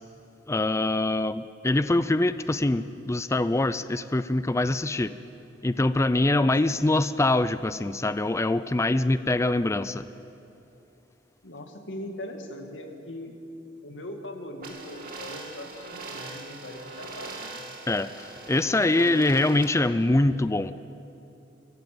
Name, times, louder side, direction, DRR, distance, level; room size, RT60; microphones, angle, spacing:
voice 1, 0.5-5.1 5.6-10.1 17.9-20.7, left 2 dB, 15° left, 13 dB, 0.4 m, -24 dB
voice 2, 6.2-6.9 11.4-13.4 13.8-17.7 18.6-19.2, left 1 dB, 75° left, 4 dB, 2.4 m, -40 dB
sound 1, 14.6-19.6, right 3 dB, 50° right, 2.6 m, -41 dB
24.0 x 15.0 x 7.9 m, 2.7 s
head